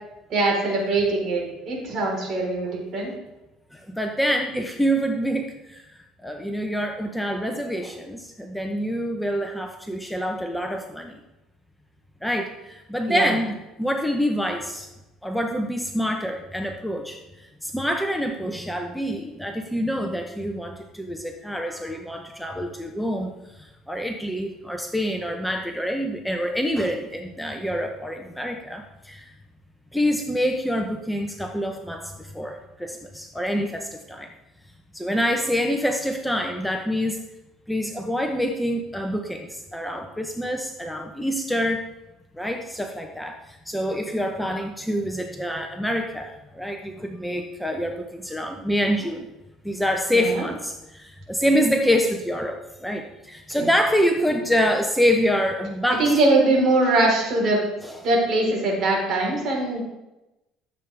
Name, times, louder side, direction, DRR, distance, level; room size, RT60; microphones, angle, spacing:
voice 1, 0.3-3.1 13.1-13.3 50.1-50.4 53.6-53.7 56.0-57.6 58.0-59.8, right 2 dB, 50° right, -1 dB, 4.1 m, -22 dB
voice 2, 3.7-5.8 6.2-11.2 12.2-14.9 15.2-17.2 17.6-23.3 23.6-29.3 29.9-34.3 34.9-37.2 37.7-41.8 42.4-49.3 49.6-56.2 57.8-58.0, equal, 5° left, 3 dB, 0.9 m, -26 dB
13.5 x 7.6 x 3.5 m, 0.97 s
cardioid pair, 110°, 0 cm